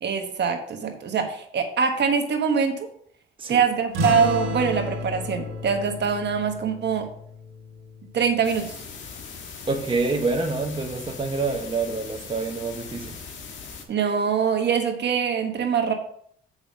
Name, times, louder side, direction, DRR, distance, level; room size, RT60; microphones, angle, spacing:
voice 1, 0.0-2.9 3.5-7.1 8.1-8.7 13.9-15.9, right 6 dB, 55° right, 1.3 m, -23 dB
sound 1, 3.9-9.0, left 1 dB, 85° right, 1.9 m, -32 dB
sound 2, 8.4-13.8, left 5 dB, 70° left, 1.5 m, -40 dB
voice 2, 9.7-13.2, right 3 dB, 25° right, 1.1 m, -27 dB
6.9 x 5.4 x 5.3 m
cardioid pair, 85°, 21 cm